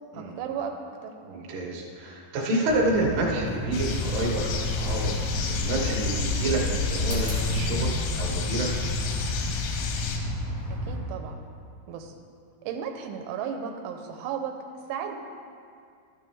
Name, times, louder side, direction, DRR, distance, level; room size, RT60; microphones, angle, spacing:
voice 1, 0.1-0.7 1.0-1.1 10.7-11.4 11.9-12.1 12.6-14.5 14.9-15.2, right 8 dB, 85° right, 4 dB, 3.1 m, -34 dB
voice 2, 1.2-5.1 5.4-8.7, right 2 dB, 60° right, -2 dB, 2.6 m, -29 dB
sound 1, 2.7-11.0, right 1 dB, 25° left, 0.6 m, -32 dB
sound 2, 3.7-10.2, left 5 dB, 90° left, 3.3 m, -30 dB
13.0 x 8.9 x 3.4 m, 2.4 s
omnidirectional pair, 5.4 m